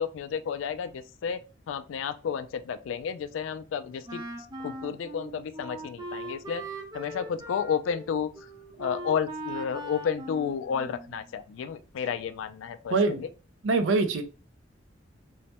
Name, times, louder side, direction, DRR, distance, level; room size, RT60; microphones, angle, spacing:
voice 1, 0.0-1.4 1.7-4.2 4.6-6.6 6.9-8.3 8.8-13.3, left 7 dB, 85° left, 0.3 m, -31 dB
Wind instrument woodwind instrument, 4.1-11.3, right 1 dB, 20° right, 0.5 m, -40 dB
voice 2, 12.9-13.2 13.6-14.2, right 3 dB, 75° right, 0.4 m, -23 dB
3.1 x 2.1 x 2.8 m
head